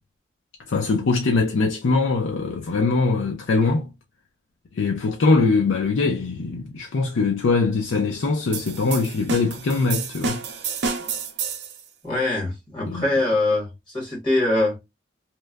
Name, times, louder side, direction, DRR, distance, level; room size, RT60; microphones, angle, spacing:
voice 1, 0.7-3.9 4.7-10.4 12.9-13.0, left 3 dB, 90° left, 0.5 m, -22 dB
sound 1, 8.5-11.8, right 5 dB, 65° right, 0.5 m, -29 dB
voice 2, 12.0-14.8, left 2 dB, 25° left, 1.2 m, -23 dB
2.8 x 2.1 x 2.3 m
head